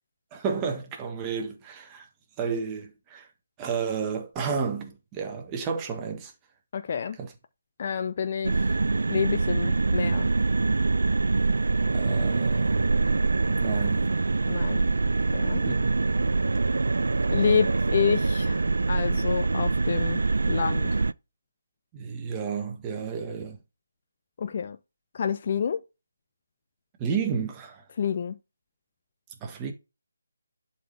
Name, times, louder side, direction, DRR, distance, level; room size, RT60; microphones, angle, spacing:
voice 1, 0.3-2.1 2.4-3.3 3.6-6.3 7.2-7.3 11.9-13.1 13.5-14.1 15.6-16.0 21.9-23.6 27.0-27.8 29.4-29.7, right 6 dB, 15° right, 1.4 m, -31 dB
voice 2, 6.7-7.2 7.8-8.5 9.1-10.3 14.5-14.9 15.3-15.7 17.3-20.9 24.4-24.8 25.1-25.8 28.0-28.4, left 7 dB, 40° left, 0.7 m, -28 dB
sound 1, 8.4-21.1, right 3 dB, 65° right, 0.4 m, -24 dB
11.0 x 4.3 x 3.4 m
figure-of-eight pair, 150°, 0 cm